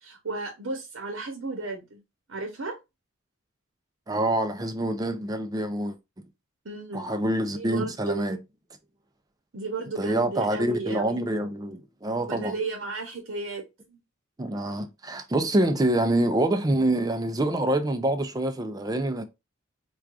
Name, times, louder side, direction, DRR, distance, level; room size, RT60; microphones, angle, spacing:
voice 1, 0.0-2.0 2.3-2.7 6.6-7.1 7.5-8.2 9.5-11.2 12.3-13.6 13.9-14.0, right 3 dB, 80° right, 0.9 m, -34 dB
voice 2, 4.1-6.2 6.9-8.4 10.0-12.6 14.4-19.2, right 1 dB, 20° right, 0.4 m, -26 dB
4.6 x 2.3 x 2.4 m
head